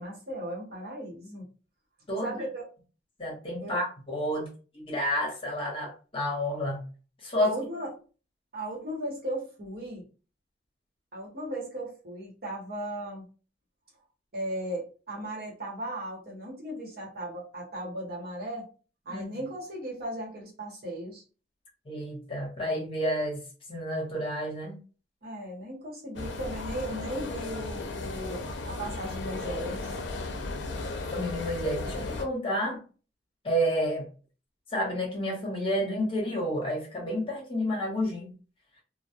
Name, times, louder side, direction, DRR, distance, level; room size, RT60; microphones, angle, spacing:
voice 1, 0.0-1.5 2.2-2.7 3.6-3.8 7.4-7.9 8.5-10.1 11.1-13.2 14.3-18.7 19.0-21.2 25.2-30.0, right 1 dB, 60° right, -3 dB, 1.0 m, -36 dB
voice 2, 3.2-4.5 4.7-6.8 7.2-7.5 19.1-19.3 21.9-23.4 23.7-24.8 31.1-32.8 33.4-34.1 34.7-38.3, equal, 30° left, -1 dB, 0.9 m, -30 dB
sound 1, 26.2-32.3, left 3 dB, 75° left, 0.5 m, -35 dB
2.2 x 2.1 x 2.8 m, 0.36 s
head